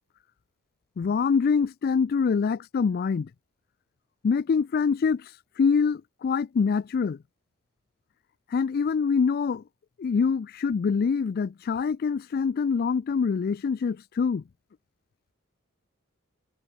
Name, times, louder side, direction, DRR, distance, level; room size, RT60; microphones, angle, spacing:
voice 1, 1.0-3.3 4.2-7.2 8.5-9.6 10.0-14.4, left 5 dB, 50° left, 0.3 m, -25 dB
head